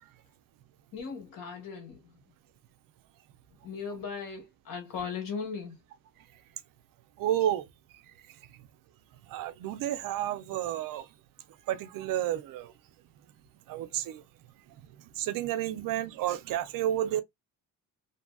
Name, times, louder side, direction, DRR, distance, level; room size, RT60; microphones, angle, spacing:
voice 1, 0.9-2.1 3.6-5.8, left 5 dB, 70° left, 1.3 m, -38 dB
voice 2, 7.2-7.6 9.3-11.0 11.7-12.7 13.7-14.2 15.2-17.2, right 12 dB, 70° right, 0.5 m, -31 dB
2.7 x 2.6 x 2.2 m
cardioid pair, 150°, 34 cm